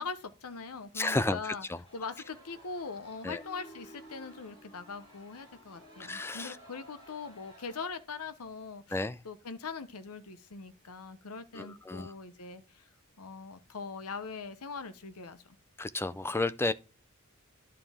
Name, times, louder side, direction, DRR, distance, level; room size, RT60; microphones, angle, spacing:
voice 1, 0.0-1.7 1.9-12.9 13.2-15.6, left 4 dB, 90° left, 0.9 m, -42 dB
voice 2, 1.0-1.4 1.7-1.8 3.2-3.4 6.0-6.5 8.9-9.2 11.6-12.1 15.8-16.7, left 2 dB, 10° left, 0.3 m, -31 dB
sound 1, 1.9-7.9, equal, 25° left, 5.0 m, -54 dB
11.0 x 4.8 x 3.5 m
head